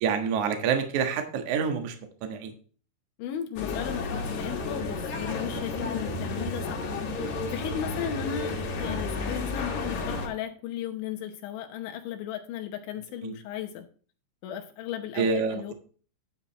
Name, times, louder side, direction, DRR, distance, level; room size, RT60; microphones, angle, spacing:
voice 1, 0.0-2.0 2.2-2.5 5.5-5.6 13.2-13.4 15.2-15.7, right 6 dB, 70° right, 6 dB, 1.9 m, -27 dB
voice 2, 3.2-13.9 14.4-15.7, left 10 dB, 75° left, 4 dB, 3.1 m, -36 dB
sound 1, 3.6-10.3, left 3 dB, 50° left, 2.5 m, -32 dB
9.4 x 9.2 x 3.0 m, 0.41 s
omnidirectional pair, 5.8 m